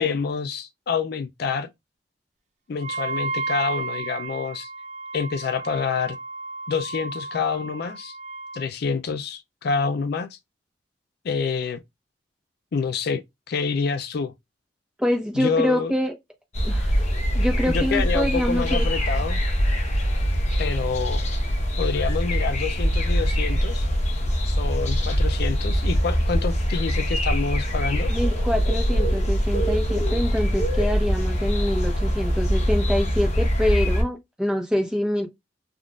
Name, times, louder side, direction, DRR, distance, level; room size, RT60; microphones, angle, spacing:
voice 1, 0.0-1.7 2.7-4.7 5.1-6.2 6.7-8.2 8.5-10.4 11.2-11.8 12.7-14.3 15.4-15.9 17.7-19.4 20.6-21.2 21.8-23.9 24.4-28.1, left 5 dB, 60° left, 0.4 m, -27 dB
Wind instrument woodwind instrument, 2.8-8.7, right 3 dB, 40° right, 0.3 m, -33 dB
voice 2, 15.0-16.1 16.6-17.0 17.3-18.9 28.1-35.3, left 1 dB, 5° right, 0.8 m, -25 dB
sound 1, 16.5-34.0, equal, 40° left, 0.9 m, -23 dB
3.6 x 2.4 x 2.3 m
head